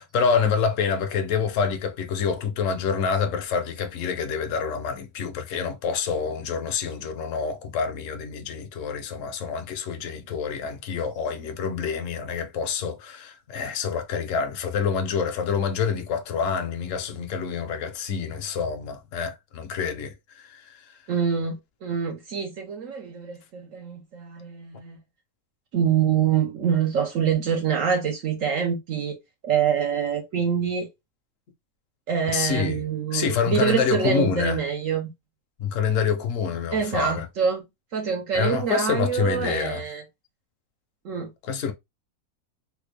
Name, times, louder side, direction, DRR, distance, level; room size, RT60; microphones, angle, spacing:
voice 1, 0.0-21.0 32.3-32.8 33.1-34.6 35.6-37.3 38.3-39.8 41.4-41.7, left 6 dB, 65° left, 1.0 m, -27 dB
voice 2, 21.1-25.0 25.7-29.2 29.4-30.9 32.1-35.1 36.7-37.6 37.9-40.0 41.0-41.3, right 7 dB, 65° right, 1.1 m, -25 dB
3.5 x 2.3 x 3.2 m
omnidirectional pair, 1.6 m